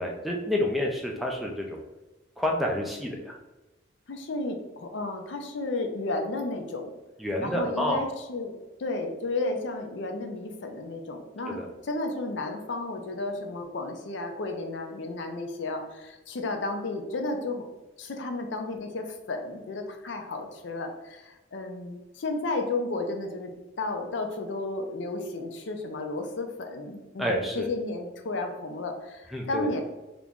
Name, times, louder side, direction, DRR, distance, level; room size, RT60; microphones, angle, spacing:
voice 1, 0.0-1.8 2.4-3.4 7.2-8.0 11.5-11.7 27.2-27.7 29.3-29.7, left 1 dB, ahead, 0 dB, 0.3 m, -29 dB
voice 2, 4.1-6.9 7.4-17.6 18.0-23.5 23.8-29.8, left 2 dB, 65° left, 4 dB, 0.5 m, -33 dB
2.9 x 2.5 x 3.5 m, 1.1 s
head